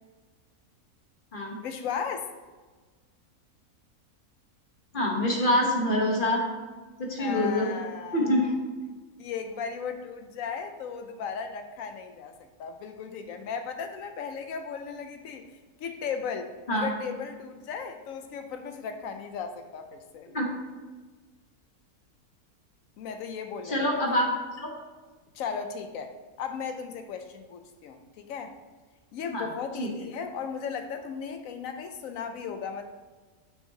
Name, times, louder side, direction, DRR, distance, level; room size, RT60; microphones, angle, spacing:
voice 1, 1.6-2.3 7.2-8.5 9.2-15.4 15.8-20.3 23.0-23.9 25.3-28.5 29.1-32.8, left 6 dB, 70° left, 7 dB, 0.9 m, -36 dB
voice 2, 4.9-6.4 7.0-7.7 8.1-8.4 16.7-16.9 20.3-20.5 23.6-24.3 24.6-24.7 29.3-29.4 29.8-29.9, left 1 dB, 40° left, -1 dB, 1.2 m, -25 dB
7.2 x 5.9 x 2.8 m, 1.3 s
omnidirectional pair, 1.5 m